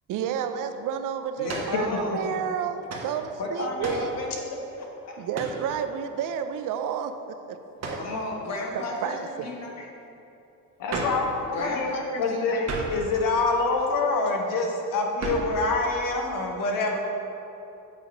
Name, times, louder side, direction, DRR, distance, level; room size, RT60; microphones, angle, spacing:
voice 1, 0.1-1.9 2.1-4.1 5.2-7.2 7.5-7.6 7.9-8.0 9.0-9.5, right 8 dB, 60° right, 9 dB, 0.5 m, -30 dB
voice 2, 1.4-2.2 3.4-4.4 4.8-5.2 8.0-9.7 11.4-12.7, left 2 dB, 50° left, -1 dB, 1.3 m, -33 dB
sound 1, 1.5-1.8 2.9-3.1 3.8-4.1 5.3-5.6 7.8-8.1 10.9-11.3 12.6-13.0 15.2-15.6, right 3 dB, 45° right, 1.2 m, -32 dB
voice 3, 10.8-12.6 12.9-17.0, left 3 dB, 65° left, 1 dB, 1.0 m, -26 dB
8.2 x 2.9 x 5.1 m, 2.9 s
cardioid pair, 85°, 35 cm